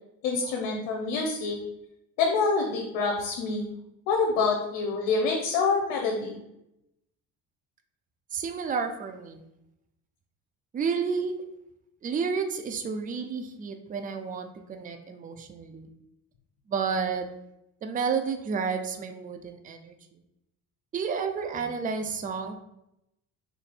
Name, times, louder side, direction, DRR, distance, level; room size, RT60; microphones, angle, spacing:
voice 1, 0.2-1.6 2.2-3.6 4.1-6.4, left 4 dB, 80° left, 1 dB, 0.8 m, -26 dB
voice 2, 8.3-9.4 10.7-11.3 12.0-15.9 16.7-17.3 17.8-20.0 20.9-22.6, right 5 dB, 20° right, 6 dB, 0.4 m, -31 dB
3.2 x 2.6 x 4.1 m, 0.84 s
supercardioid pair, 85°, 40 cm